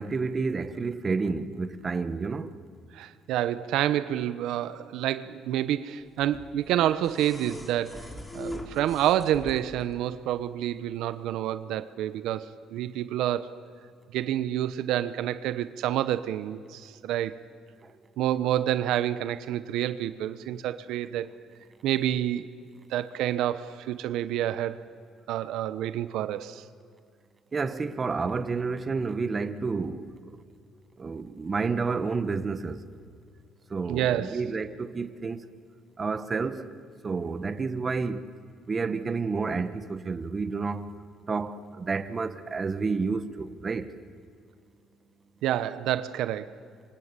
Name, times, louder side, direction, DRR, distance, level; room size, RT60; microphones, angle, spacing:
voice 1, 0.0-2.6 17.8-17.9 27.5-30.4 31.0-32.8 33.7-35.4 36.0-36.7 37.0-38.3 38.7-40.9 41.3-43.9, right 4 dB, 25° right, 1.2 m, -30 dB
voice 2, 2.9-8.0 8.3-13.6 14.1-17.4 18.2-21.3 21.8-22.5 22.9-24.8 25.3-26.6 33.9-34.4 45.4-46.5, right 12 dB, 80° right, 0.9 m, -28 dB
sound 1, 6.2-9.9 11.2-11.3, left 1 dB, 15° left, 2.8 m, -42 dB
28.0 x 25.5 x 8.3 m
cardioid pair, 125°, 0 cm